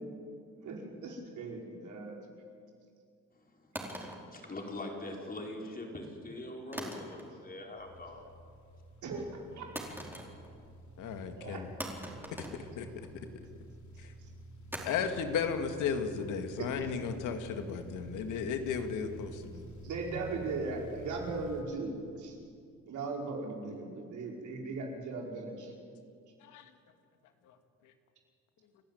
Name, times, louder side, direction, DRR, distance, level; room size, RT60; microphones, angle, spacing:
voice 1, 0.6-2.1 9.0-9.7 11.4-11.6 16.6-16.7 19.8-21.9 22.2-22.4 22.9-25.7, right 3 dB, 75° right, -1 dB, 5.1 m, -38 dB
sound 1, 3.7-5.1 6.7-7.6 7.9-8.3 9.7-10.7 11.0-11.1 11.8-13.3 14.7-17.7, right 1 dB, 5° right, 4.5 m, -44 dB
voice 2, 4.0-8.2, left 2 dB, 30° left, 0 dB, 5.0 m, -43 dB
sound 2, 7.8-21.6, right 1 dB, 70° left, 3.2 m, -50 dB
voice 3, 11.0-11.7 12.8-12.9 14.0-14.1 14.8-19.7 26.4-26.7, left 6 dB, 85° left, 7 dB, 1.9 m, -34 dB
30.0 x 12.0 x 9.3 m, 2.3 s
cardioid pair, 90°, 30 cm